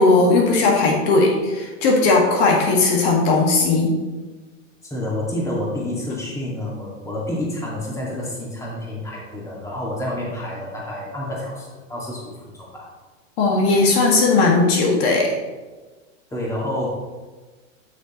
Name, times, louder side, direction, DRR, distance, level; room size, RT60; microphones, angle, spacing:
voice 1, 0.0-3.9 13.4-15.3, left 3 dB, 50° left, 0 dB, 1.8 m, -17 dB
voice 2, 4.8-12.9 16.3-16.9, left 1 dB, 10° left, -4 dB, 2.0 m, -29 dB
11.5 x 6.4 x 3.0 m, 1.3 s
hypercardioid pair, 135°, 39 cm